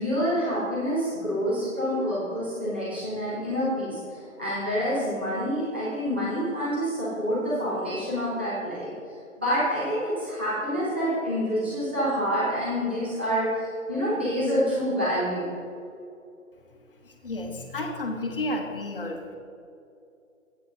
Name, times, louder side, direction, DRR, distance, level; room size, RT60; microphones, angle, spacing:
voice 1, 0.0-9.0 9.4-15.5, equal, 10° right, -10 dB, 0.8 m, -27 dB
voice 2, 17.2-19.2, left 1 dB, 40° left, 2 dB, 1.2 m, -31 dB
8.4 x 8.2 x 5.0 m, 2.6 s
hypercardioid pair, 170°, 41 cm